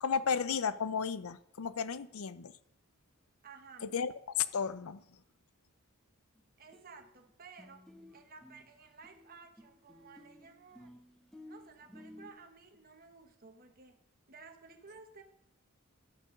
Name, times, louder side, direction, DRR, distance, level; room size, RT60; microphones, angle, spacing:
voice 1, 0.0-2.5 3.8-4.1 4.4-5.0, left 6 dB, 85° left, 15 dB, 0.6 m, -33 dB
voice 2, 3.4-4.0 6.6-10.9 11.4-14.0 14.3-15.2, right 4 dB, 45° right, 5 dB, 1.1 m, -55 dB
sound 1, 6.4-6.5 6.7-7.3 7.6-12.3, left 1 dB, ahead, 1.3 m, -54 dB
11.0 x 8.3 x 5.1 m, 0.73 s
head